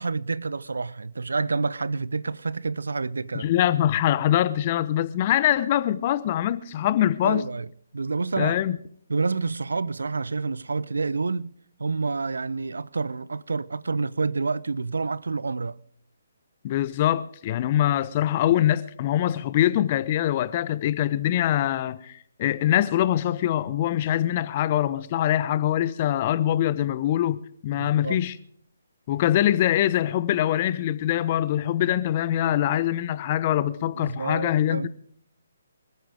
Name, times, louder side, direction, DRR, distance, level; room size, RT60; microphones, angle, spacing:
voice 1, 0.0-3.5 7.2-7.7 7.9-8.6 9.1-11.5 11.8-15.8 27.8-28.2 34.0-34.9, right 4 dB, 70° right, 0.7 m, -28 dB
voice 2, 3.3-7.5 8.4-8.8 16.6-28.4 29.1-34.9, left 12 dB, 35° left, 1.0 m, -23 dB
25.0 x 14.0 x 3.6 m
figure-of-eight pair, 140°, 0 cm